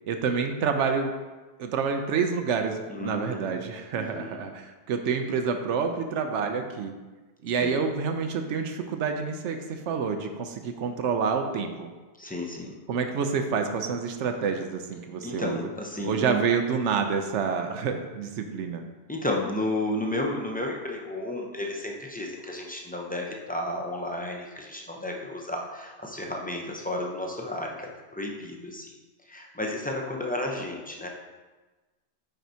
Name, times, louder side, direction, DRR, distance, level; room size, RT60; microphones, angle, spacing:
voice 1, 0.1-1.1 1.6-6.9 7.4-11.9 12.9-15.6 16.0-18.8, right 5 dB, 85° right, 5 dB, 0.9 m, -28 dB
voice 2, 2.9-3.6 3.9-4.4 7.6-7.9 12.2-12.7 15.2-16.4 19.1-28.9 29.3-31.1, left 1 dB, 10° left, -1 dB, 0.5 m, -32 dB
9.1 x 4.5 x 2.7 m, 1.2 s
omnidirectional pair, 1.2 m